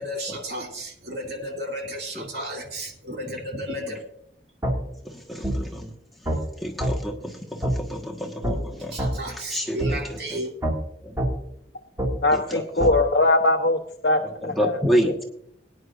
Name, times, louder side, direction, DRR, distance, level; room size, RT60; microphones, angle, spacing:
voice 1, 0.0-4.0 8.9-10.5, equal, 60° right, 1 dB, 2.6 m, -33 dB
sound 1, 4.6-4.8 5.4-5.6 6.3-6.4 6.8-6.9 7.6-7.8 8.4-8.6 9.0-9.1 9.8-9.9 10.6-10.8 11.2-11.3 12.0-12.1 12.8-12.9, right 1 dB, 15° right, 2.1 m, -24 dB
voice 2, 5.0-5.9 6.6-9.0 9.5-10.0 10.3-10.4 11.0-11.2 12.3-12.8 14.6-15.2, equal, ahead, -1 dB, 1.4 m, -28 dB
voice 3, 12.2-14.8 15.0-15.2, left 2 dB, 60° left, 3 dB, 0.8 m, -21 dB
21.0 x 10.0 x 2.5 m, 0.73 s
head